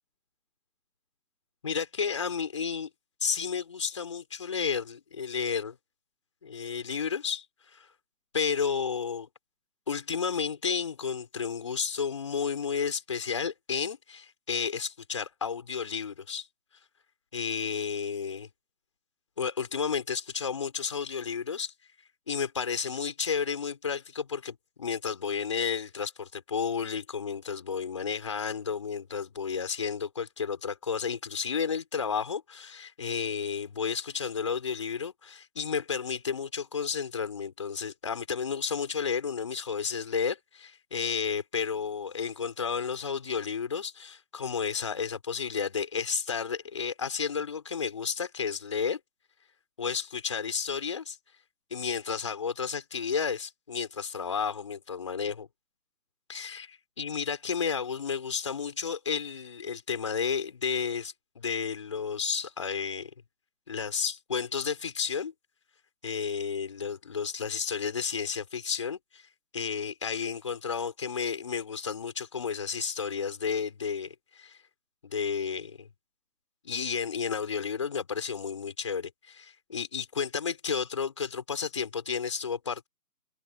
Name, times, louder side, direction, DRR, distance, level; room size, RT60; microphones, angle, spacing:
voice 1, 1.6-2.9 3.2-5.8 6.4-7.4 7.7-7.9 8.3-9.3 9.9-16.5 17.3-18.5 19.4-21.7 22.3-49.0 49.8-51.2 51.7-55.5 56.3-63.1 63.7-65.3 66.0-69.2 69.5-74.6 75.0-75.9 76.6-82.9, left 6 dB, 20° left, 5.0 m, -32 dB
figure-of-eight pair, 175°, 48 cm